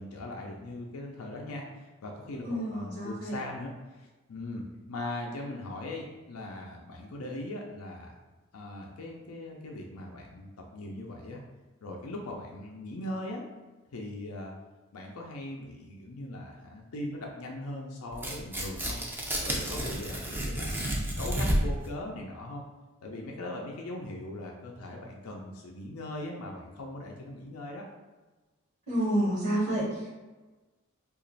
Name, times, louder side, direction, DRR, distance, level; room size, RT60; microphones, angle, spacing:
voice 1, 0.0-3.7 4.0-8.1 8.5-11.4 11.8-13.5 13.9-14.5 14.9-19.0 19.4-20.8 21.2-22.6 23.0-27.8, left 1 dB, 90° left, 0 dB, 0.5 m, -40 dB
voice 2, 2.3-3.4 28.9-30.1, right 1 dB, 55° right, -6 dB, 1.2 m, -29 dB
Tearing, 18.1-21.9, equal, 10° right, 0.4 m, -31 dB
3.0 x 2.5 x 3.9 m, 1.2 s
head